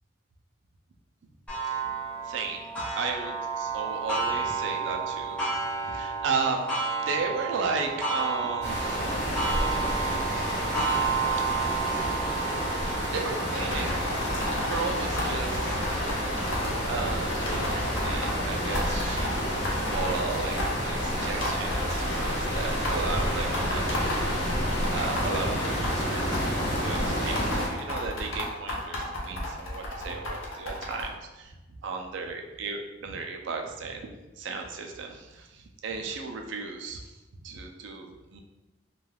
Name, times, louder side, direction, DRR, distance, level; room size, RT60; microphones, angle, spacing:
Clock, 1.5-16.8 17.4-17.5 18.0-18.1 19.1-19.2, right 5 dB, 5° left, 0.7 m, -32 dB
voice 1, 2.2-9.4 13.1-14.0 14.6-19.6 19.9-20.6 20.8-31.5 31.8-37.1 37.4-38.4, right 4 dB, 65° right, 3 dB, 0.3 m, -35 dB
sound 1, 8.6-27.7, equal, 55° left, 1.2 m, -29 dB
sound 2, 13.5-18.3 18.7-31.0, left 1 dB, 75° left, 0.6 m, -34 dB
2.3 x 2.2 x 3.2 m, 1.1 s
head